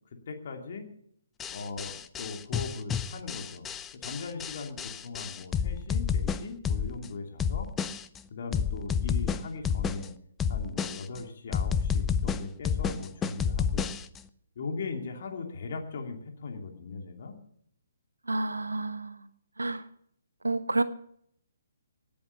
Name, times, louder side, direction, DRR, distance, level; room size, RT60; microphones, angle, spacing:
voice 1, 0.1-0.9 1.5-3.7 3.9-7.7 8.3-10.1 10.5-14.0 14.6-17.4, left 4 dB, 50° left, 2 dB, 2.7 m, -39 dB
sound 1, 1.4-7.1 7.4-8.2 8.5-10.1 10.4-11.2 11.5-14.2, left 7 dB, 15° left, 0.6 m, -30 dB
voice 2, 18.3-19.3 19.6-19.9 20.4-20.8, right 2 dB, 80° right, 10 dB, 1.3 m, -29 dB
18.5 x 8.7 x 6.8 m, 0.69 s
figure-of-eight pair, 135°, 0 cm